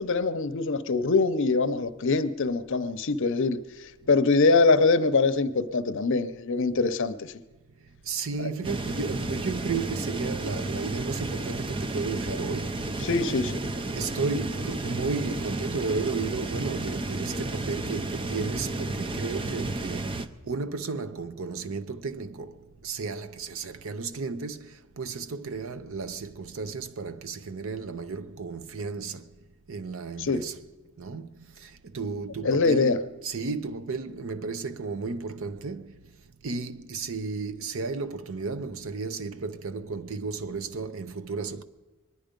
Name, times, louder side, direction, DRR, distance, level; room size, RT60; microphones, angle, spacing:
voice 1, 0.0-3.6 4.1-7.3 8.4-8.5 13.0-13.6 30.2-30.4 32.4-33.0, left 3 dB, 60° left, 0.7 m, -23 dB
voice 2, 8.0-12.9 13.9-29.3 29.7-30.6 31.0-36.0 36.4-41.6, right 4 dB, 70° right, 0.7 m, -33 dB
sound 1, 8.6-20.3, right 2 dB, 25° right, 0.5 m, -32 dB
22.5 x 10.0 x 5.2 m
head